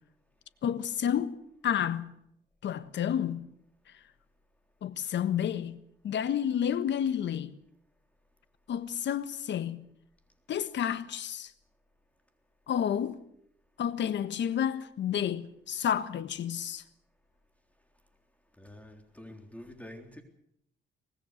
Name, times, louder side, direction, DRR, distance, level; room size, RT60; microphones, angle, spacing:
voice 1, 0.6-1.4 1.6-2.1 2.6-3.5 4.8-7.5 8.7-9.8 10.5-11.5 12.7-13.2 13.8-16.8, left 9 dB, 65° left, 1.4 m, -30 dB
voice 2, 18.6-20.2, left 1 dB, 5° left, 3.7 m, -47 dB
24.0 x 19.5 x 6.6 m
cardioid pair, 90°, 20 cm